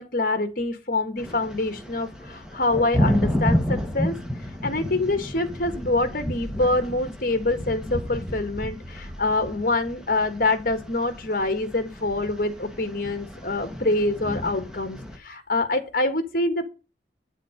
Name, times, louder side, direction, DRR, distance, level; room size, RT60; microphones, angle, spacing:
voice 1, 0.0-4.1 4.6-16.6, left 2 dB, 50° left, 9 dB, 1.8 m, -25 dB
sound 1, 1.2-15.2, equal, 5° right, 1.7 m, -31 dB
9.2 x 7.4 x 5.3 m, 0.30 s
head